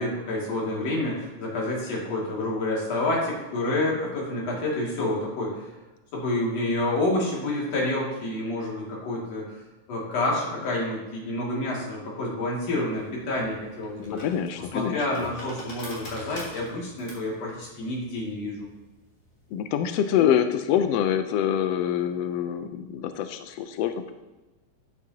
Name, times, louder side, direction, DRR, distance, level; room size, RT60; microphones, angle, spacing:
voice 1, 0.0-5.7 6.1-9.5 9.9-14.2 14.7-18.7, left 2 dB, 55° left, -4 dB, 3.4 m, -28 dB
sound 1, 12.9-19.6, left 1 dB, 30° left, 2.3 m, -44 dB
voice 2, 14.0-15.3 19.5-24.1, left 9 dB, 80° left, 8 dB, 1.4 m, -25 dB
12.0 x 8.3 x 2.8 m, 1.1 s
omnidirectional pair, 3.5 m